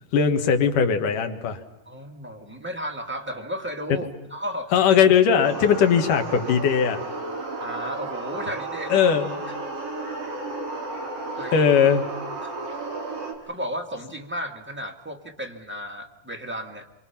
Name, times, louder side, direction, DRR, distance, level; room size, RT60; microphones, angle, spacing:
voice 1, 0.1-1.6 3.9-4.0 4.7-7.0 8.9-9.4 11.5-12.0, left 7 dB, 75° left, 6 dB, 3.2 m, -19 dB
voice 2, 1.8-4.7 7.6-9.0 11.4-11.7 12.4-12.5 13.5-16.9, equal, 10° right, 2 dB, 0.8 m, -34 dB
sound 1, 5.4-13.3, right 2 dB, 45° right, 4.4 m, -33 dB
27.5 x 24.5 x 5.8 m, 0.96 s
omnidirectional pair, 3.8 m